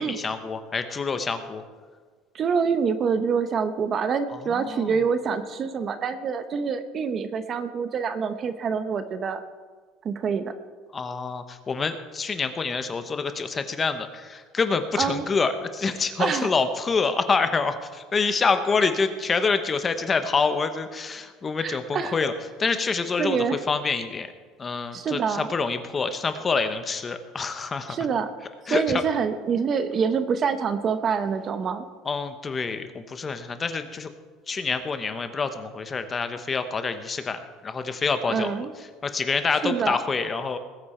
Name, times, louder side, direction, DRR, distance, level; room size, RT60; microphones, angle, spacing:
voice 1, 0.0-1.6 4.5-4.9 10.9-22.3 22.6-23.4 23.7-24.3 24.6-28.0 28.7-29.0 32.0-34.1 34.5-38.7 39.0-40.6, left 4 dB, 25° left, 9 dB, 1.0 m, -26 dB
voice 2, 2.3-9.4 10.0-10.5 14.9-15.2 16.2-16.5 18.8-18.9 21.6-22.2 23.2-23.6 24.9-25.5 27.9-28.3 28.7-31.8 38.3-38.7 39.6-40.0, right 6 dB, 35° right, 11 dB, 0.8 m, -26 dB
20.0 x 8.6 x 4.4 m, 1.5 s
cardioid pair, 140°, 0 cm